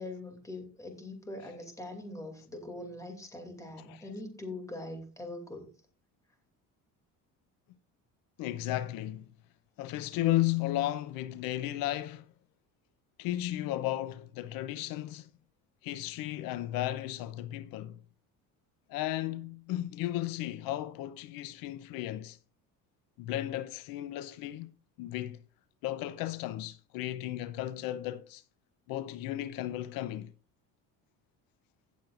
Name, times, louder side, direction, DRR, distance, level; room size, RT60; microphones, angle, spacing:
voice 1, 0.0-5.7, left 2 dB, 10° left, 2.6 m, -42 dB
voice 2, 3.8-4.1 8.4-9.3 9.8-12.3 13.2-15.3 15.8-18.0 18.9-22.4 23.2-24.7 25.0-25.4 25.8-28.4 28.9-30.3, left 14 dB, 80° left, 0.7 m, -34 dB
16.5 x 7.5 x 2.5 m
cardioid pair, 140°, 34 cm